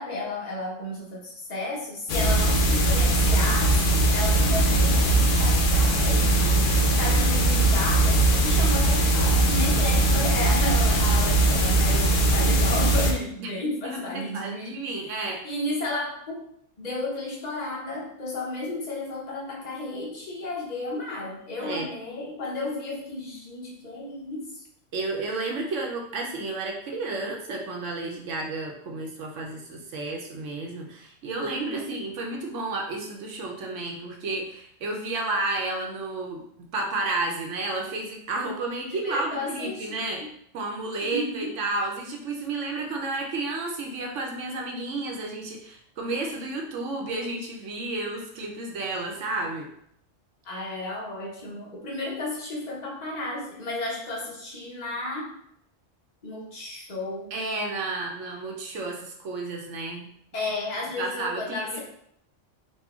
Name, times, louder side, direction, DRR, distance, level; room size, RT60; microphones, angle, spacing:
voice 1, 0.0-6.4 7.0-16.4 16.8-24.6 25.1-25.2 31.4-32.0 39.0-40.1 41.0-41.6 50.4-55.3 56.2-57.3 60.3-61.8, left 2 dB, 35° left, -3 dB, 1.0 m, -33 dB
sound 1, 2.1-13.1, right 2 dB, 70° left, 0.9 m, -20 dB
voice 2, 6.3-7.0 13.4-13.5 13.8-15.4 21.6-21.9 24.9-40.2 40.5-49.7 57.3-60.1 61.0-61.8, right 2 dB, 75° right, 1 dB, 1.0 m, -32 dB
4.2 x 2.2 x 3.5 m, 0.70 s
omnidirectional pair, 1.3 m